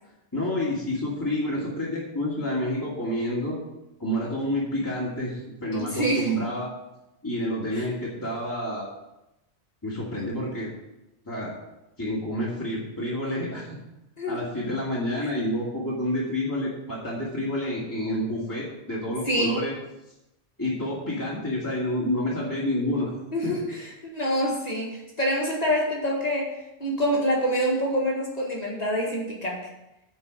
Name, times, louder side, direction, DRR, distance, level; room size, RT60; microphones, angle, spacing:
voice 1, 0.3-3.6 4.0-6.7 7.2-8.8 9.8-10.7 11.2-11.5 12.0-13.7 14.3-19.7 20.6-23.1 23.4-23.5, left 1 dB, 20° left, -7 dB, 2.2 m, -29 dB
voice 2, 5.7-6.4 7.7-7.9 14.2-14.4 19.3-19.6 23.3-29.7, equal, 40° left, -2 dB, 2.0 m, -26 dB
9.3 x 4.7 x 7.6 m, 0.93 s
omnidirectional pair, 1.1 m